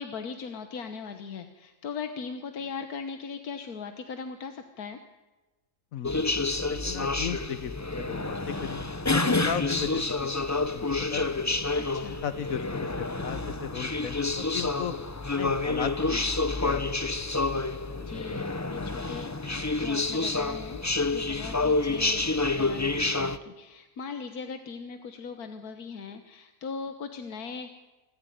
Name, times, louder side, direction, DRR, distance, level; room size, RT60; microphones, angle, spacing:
voice 1, 0.0-5.0 11.7-12.2 18.1-27.9, left 5 dB, 90° left, 7 dB, 1.7 m, -39 dB
voice 2, 5.9-6.2 6.7-10.3 10.7-11.5 12.2-14.9 15.3-16.4 16.6-16.8 17.9-18.4, left 8 dB, 70° left, 13 dB, 1.3 m, -36 dB
sound 1, 6.0-23.4, left 3 dB, 20° left, 0.5 m, -28 dB
26.5 x 14.0 x 9.3 m, 1.2 s
omnidirectional pair, 1.5 m